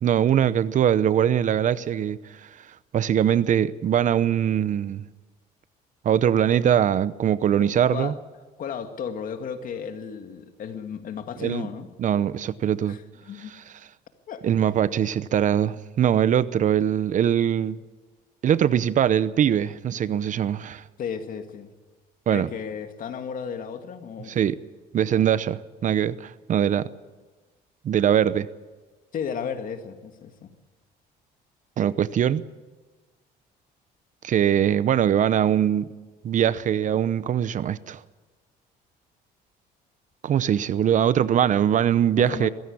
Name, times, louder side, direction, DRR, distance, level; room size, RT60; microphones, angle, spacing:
voice 1, 0.0-2.7 2.9-5.0 6.0-8.1 11.4-11.7 12.0-13.0 13.5-13.6 14.4-17.8 18.4-20.8 22.3-22.5 24.3-24.6 24.9-26.9 27.8-28.5 31.8-32.4 34.2-35.9 36.2-38.0 40.2-42.5, right 9 dB, 50° right, 0.8 m, -22 dB
voice 2, 7.6-8.1 8.6-11.9 12.9-13.5 14.3-14.4 21.0-21.7 22.3-24.3 25.1-25.3 29.1-30.5 42.2-42.5, left 7 dB, 55° left, 2.1 m, -34 dB
22.0 x 16.0 x 8.6 m
cardioid pair, 110°, 17 cm